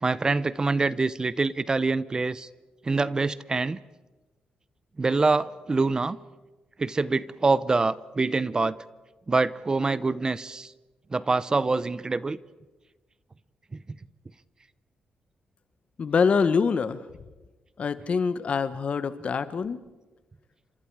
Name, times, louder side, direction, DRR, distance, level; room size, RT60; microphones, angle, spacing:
voice 1, 0.0-2.5 2.8-3.8 5.0-6.2 6.8-8.8 9.3-10.7 11.1-12.4 13.7-13.8, right 3 dB, 30° right, 17 dB, 0.7 m, -25 dB
voice 2, 16.0-17.0 17.8-19.8, left 5 dB, 50° left, 13 dB, 1.3 m, -25 dB
29.5 x 26.0 x 4.9 m, 1.2 s
cardioid pair, 95°, 3 cm